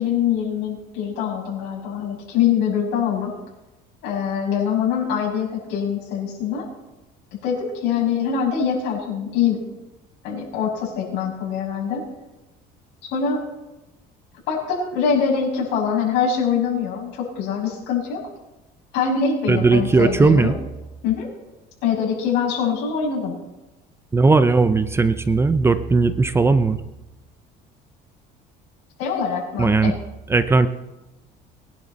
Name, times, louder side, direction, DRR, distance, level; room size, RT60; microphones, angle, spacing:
voice 1, 0.0-3.3 4.0-6.7 7.4-9.6 10.2-12.1 13.1-13.4 14.5-18.2 18.9-20.5 21.0-21.3 21.8-23.3 29.0-29.9, left 7 dB, 80° left, -3 dB, 6.3 m, -23 dB
voice 2, 19.5-20.6 24.1-26.8 29.6-29.9 30.3-30.7, right 3 dB, 15° right, 11 dB, 0.6 m, -17 dB
22.0 x 11.0 x 4.1 m, 1.0 s
cardioid pair, 140°, 18 cm